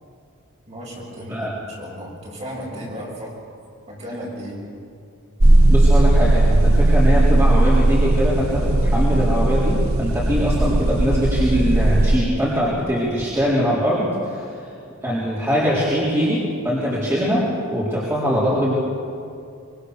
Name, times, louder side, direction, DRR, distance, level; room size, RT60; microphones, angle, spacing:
voice 1, 0.7-3.3 3.9-4.6, equal, 30° right, -3 dB, 6.8 m, -34 dB
sound 1, 5.4-12.2, right 1 dB, 85° right, 1.3 m, -16 dB
voice 2, 5.7-14.4 15.0-18.7, equal, 10° right, -8 dB, 4.3 m, -22 dB
25.0 x 24.0 x 6.8 m, 2.4 s
head